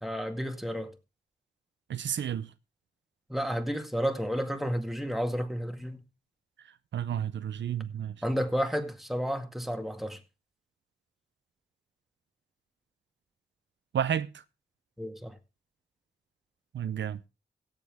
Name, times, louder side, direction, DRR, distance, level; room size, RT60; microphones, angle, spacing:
voice 1, 0.0-0.9 3.3-6.0 8.2-10.2 15.0-15.4, equal, ahead, 2.0 m, -31 dB
voice 2, 1.9-2.5 6.9-8.2 13.9-14.3 16.7-17.2, right 9 dB, 80° right, 0.6 m, -31 dB
17.0 x 7.6 x 3.5 m
cardioid pair, 50°, 18 cm